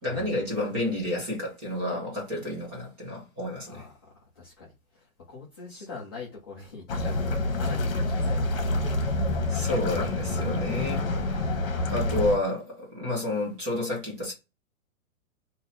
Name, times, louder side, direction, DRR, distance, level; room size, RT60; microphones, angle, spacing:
voice 1, 0.0-3.9 9.5-11.5 11.9-14.3, left 2 dB, 15° right, 1.0 m, -30 dB
voice 2, 3.7-8.8 10.4-11.5, left 4 dB, 20° left, 0.5 m, -44 dB
sound 1, 6.9-12.4, left 2 dB, 45° left, 1.2 m, -27 dB
3.8 x 2.7 x 3.9 m
hypercardioid pair, 175°, 42 cm